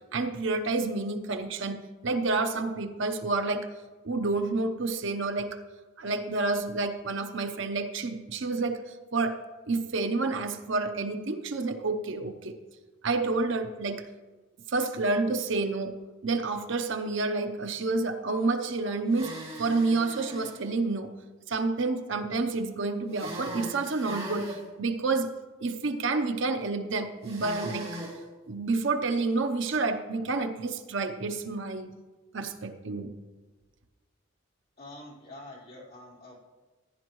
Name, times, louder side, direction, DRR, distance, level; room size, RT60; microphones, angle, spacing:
voice 1, 0.1-3.7 4.0-5.6 6.0-8.8 9.1-9.4 9.7-12.6 13.0-14.0 14.7-15.9 16.2-19.3 19.6-21.1 21.5-25.3 25.6-27.9 28.5-31.9 32.3-33.1, right 3 dB, 60° right, 7 dB, 0.7 m, -29 dB
sound 1, 19.1-20.6 23.1-24.6 27.2-28.2, right 1 dB, 30° right, 2.6 m, -39 dB
voice 2, 34.8-36.4, left 1 dB, 45° left, -6 dB, 3.4 m, -46 dB
15.5 x 10.5 x 3.0 m, 1.3 s
head